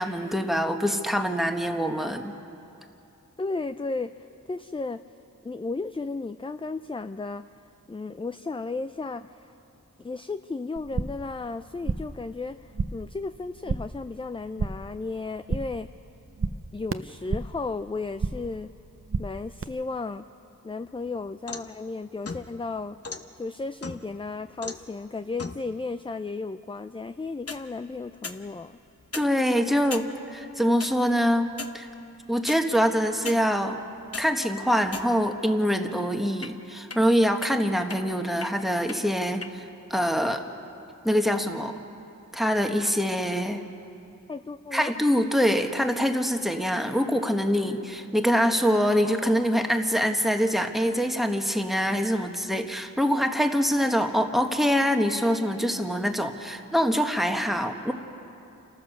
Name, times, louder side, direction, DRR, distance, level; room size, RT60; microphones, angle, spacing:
voice 1, 0.0-2.3 29.1-31.9 32.3-33.8 34.2-39.6 39.9-40.4 41.0-41.7 42.3-43.6 44.7-57.9, equal, ahead, 4 dB, 1.4 m, -24 dB
voice 2, 3.4-5.0 5.4-7.4 7.9-9.5 10.0-15.9 16.7-18.7 19.2-20.2 20.6-23.0 23.4-28.7 37.5-37.6 44.3-44.9, left 3 dB, 15° left, 10 dB, 0.4 m, -34 dB
sound 1, 10.8-11.3 11.6-12.2 12.5-13.1 13.4-14.0 14.3-15.0 15.2-15.9 16.1-17.6 17.9-18.6 18.8-19.6, right 4 dB, 40° right, 0.7 m, -32 dB
sound 2, 20.8-21.8 22.2-23.2 23.8-24.2 24.6-24.9 25.4-25.6 27.3-27.6 28.2-28.4 29.0-29.3 29.9-30.1 30.8-30.9 31.5-31.8 32.5-32.6 33.2-33.4 33.9-34.3 34.9-35.4 36.4-36.5 36.9-37.0 37.4-37.5 37.9-38.0 38.4-38.5 38.9-39.0 39.4-39.5, left 4 dB, 45° left, 1.0 m, -36 dB
29.5 x 14.0 x 6.7 m, 2.7 s
wide cardioid pair, 75°, 33 cm